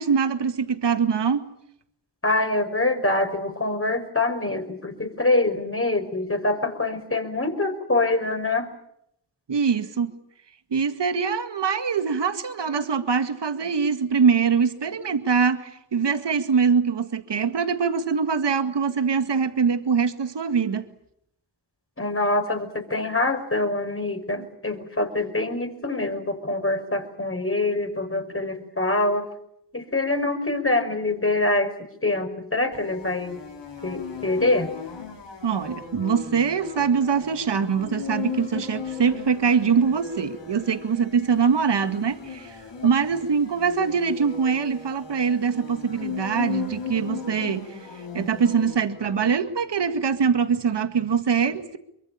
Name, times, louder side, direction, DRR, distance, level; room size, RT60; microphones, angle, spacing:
voice 1, 0.0-1.4 9.5-10.1 10.7-20.9 35.4-42.6 42.8-47.7 48.1-51.8, right 6 dB, 70° right, 9 dB, 2.0 m, -23 dB
voice 2, 2.2-8.7 22.0-29.3 29.7-33.4 33.8-34.7, left 2 dB, 30° left, 5 dB, 5.6 m, -25 dB
sound 1, 32.7-49.3, left 6 dB, 70° left, 4.5 m, -37 dB
24.0 x 23.0 x 8.7 m, 0.75 s
cardioid pair, 50°, 44 cm